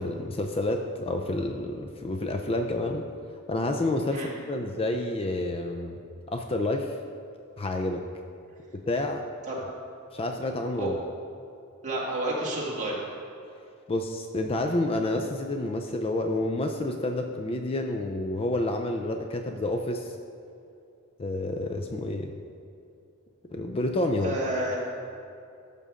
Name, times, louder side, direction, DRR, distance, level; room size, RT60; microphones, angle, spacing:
voice 1, 0.0-3.0 3.5-6.0 6.3-7.0 7.6-8.0 8.7-9.2 10.1-11.0 13.9-20.1 21.2-22.3 23.5-24.4, left 2 dB, 25° left, 4 dB, 0.4 m, -29 dB
voice 2, 11.8-13.0 24.2-24.8, right 1 dB, 35° right, -5 dB, 2.1 m, -30 dB
13.5 x 6.8 x 3.7 m, 2.6 s
head